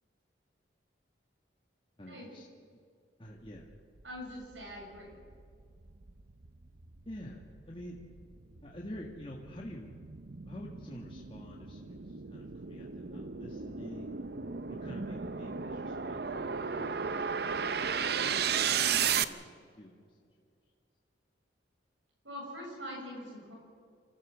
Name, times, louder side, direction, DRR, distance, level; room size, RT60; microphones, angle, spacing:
voice 1, 2.0-2.5 2.7-2.8 3.2-3.8 7.0-8.0 8.6-9.9 10.4-14.4 14.7-17.8 18.2-18.5 18.8-20.2, equal, 25° left, -2 dB, 1.8 m, -48 dB
voice 2, 4.0-5.1 22.2-23.5, equal, 75° right, -1 dB, 7.0 m, -43 dB
sound 1, 4.5-4.6 5.1-19.2, right 7 dB, 55° right, 0.7 m, -35 dB
27.5 x 14.5 x 7.5 m, 2.2 s
head